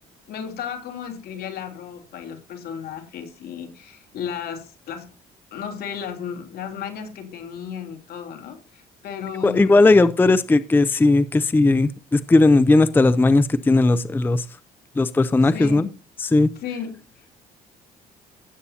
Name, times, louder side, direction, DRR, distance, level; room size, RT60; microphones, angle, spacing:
voice 1, 0.3-5.1 5.5-9.9 15.4-15.9 16.5-17.3, left 7 dB, 65° left, 3.2 m, -34 dB
voice 2, 9.4-14.4 15.0-15.9 16.2-16.5, left 2 dB, 10° left, 0.5 m, -17 dB
17.0 x 8.3 x 2.8 m
cardioid pair, 110°, 17 cm